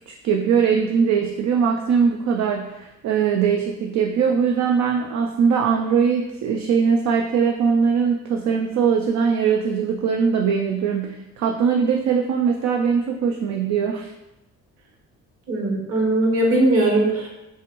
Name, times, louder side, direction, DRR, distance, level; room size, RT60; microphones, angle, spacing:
voice 1, 0.1-14.1, right 6 dB, 65° right, 2 dB, 0.5 m, -21 dB
voice 2, 15.5-17.3, right 1 dB, 50° right, -2 dB, 1.4 m, -19 dB
5.5 x 2.6 x 3.1 m, 0.96 s
cardioid pair, 90°, 30 cm